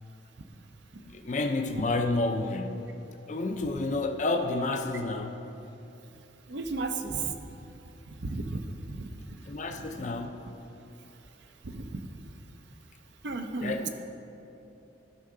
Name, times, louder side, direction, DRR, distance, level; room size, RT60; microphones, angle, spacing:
voice 1, 1.0-2.9 3.3-5.4 9.5-10.4 13.6-13.9, left 2 dB, 40° left, 5 dB, 0.4 m, -30 dB
voice 2, 6.5-7.3 8.2-8.6 8.9-9.1 11.6-12.0 13.2-13.9, right 3 dB, 65° right, 6 dB, 0.6 m, -33 dB
13.0 x 5.5 x 3.8 m, 2.9 s
head